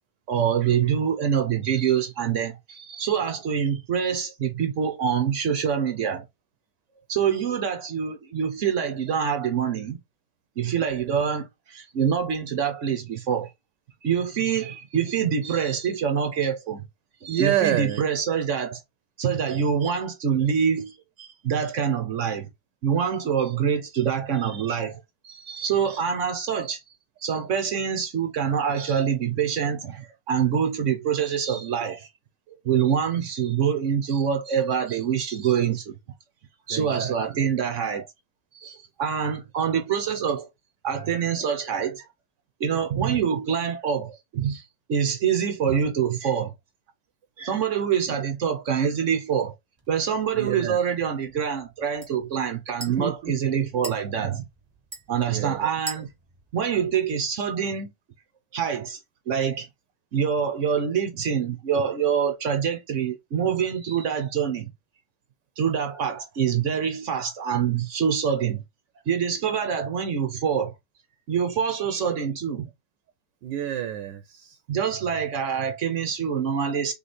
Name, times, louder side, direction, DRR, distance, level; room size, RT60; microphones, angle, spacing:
voice 1, 0.3-6.3 7.1-10.0 10.6-13.5 14.0-16.9 17.2-18.8 19.2-22.5 22.8-26.8 27.2-32.1 32.5-35.9 36.7-38.1 38.5-40.5 40.8-42.1 42.6-46.5 47.4-49.5 49.9-54.4 55.1-56.1 56.5-57.9 58.5-59.0 59.3-59.7 60.1-64.7 65.6-68.6 69.1-70.7 71.3-72.7 74.7-76.9, right 7 dB, 55° right, 0.9 m, -25 dB
voice 2, 17.3-18.0 36.7-37.4 48.1-48.3 50.3-50.8 52.9-53.3 55.2-55.7 73.4-74.6, right 11 dB, 90° right, 1.2 m, -28 dB
sound 1, 49.8-57.6, right 2 dB, 15° right, 1.3 m, -45 dB
3.5 x 3.2 x 4.0 m
omnidirectional pair, 1.9 m